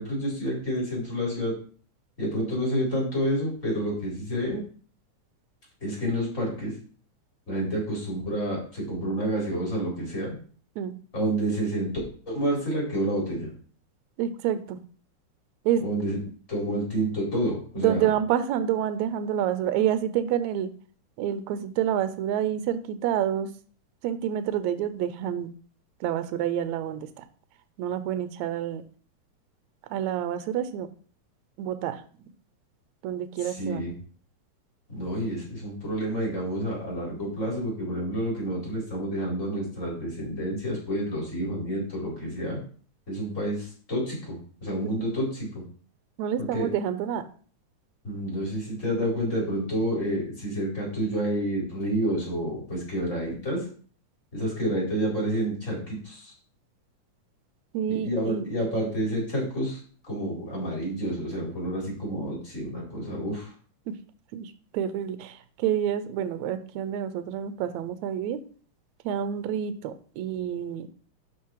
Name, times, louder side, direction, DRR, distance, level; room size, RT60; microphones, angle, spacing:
voice 1, 0.0-1.5 2.2-4.6 5.8-6.7 7.5-10.3 11.1-11.9 12.3-13.5 15.8-16.2 16.5-18.1 33.4-33.9 34.9-42.6 43.1-45.6 46.5-46.7 48.0-53.6 54.3-56.3 58.0-59.8 60.1-63.5, right 1 dB, 25° left, -3 dB, 4.8 m, -29 dB
voice 2, 14.2-14.8 15.7-15.9 17.8-20.7 21.2-23.5 24.0-25.5 26.0-27.2 27.8-28.8 29.9-30.9 31.6-32.0 33.0-33.8 46.2-47.3 57.7-58.5 63.9-64.0 64.3-68.4 69.0-70.9, right 10 dB, 80° right, 12 dB, 2.0 m, -28 dB
12.0 x 4.3 x 4.7 m, 0.43 s
omnidirectional pair, 3.4 m